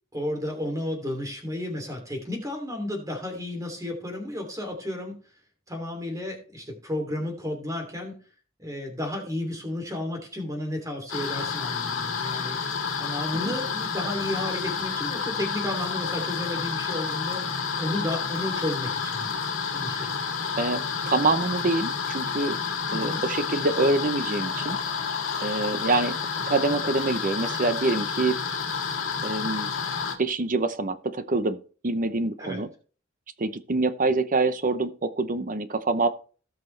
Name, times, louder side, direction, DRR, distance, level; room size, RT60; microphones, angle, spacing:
voice 1, 0.1-5.2 5.7-8.1 8.6-12.6 13.0-17.4 17.8-19.3 19.7-20.2 22.9-23.2 32.4-32.6, left 1 dB, 15° right, 3 dB, 3.0 m, -32 dB
sound 1, 11.1-30.2, left 5 dB, 80° left, 2.0 m, -30 dB
voice 2, 20.6-22.6 22.9-24.8 25.4-26.1 26.5-28.4 29.2-29.7 30.2-32.7 33.4-36.1, right 3 dB, 40° right, 11 dB, 0.8 m, -26 dB
17.5 x 6.0 x 3.3 m, 0.40 s
head